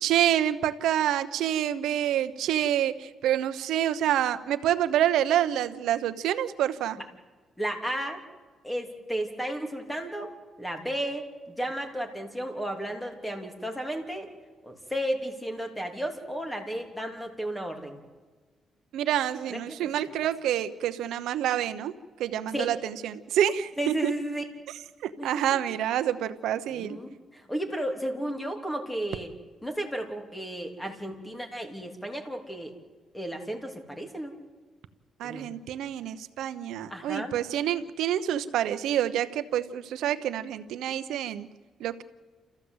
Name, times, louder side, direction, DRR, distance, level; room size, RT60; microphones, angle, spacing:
voice 1, 0.0-7.0 18.9-21.9 22.2-24.1 25.0-27.0 35.2-41.5 41.8-42.0, right 11 dB, 85° right, 10 dB, 1.0 m, -27 dB
voice 2, 7.6-8.2 8.6-10.3 10.6-14.3 14.6-18.0 19.5-19.9 22.5-22.7 23.8-24.5 25.2-25.6 26.7-29.3 29.6-32.7 33.1-34.3 35.2-35.5 36.9-37.3, right 1 dB, 5° left, 4 dB, 3.3 m, -33 dB
29.0 x 14.5 x 8.1 m, 1.4 s
cardioid pair, 90°, 0 cm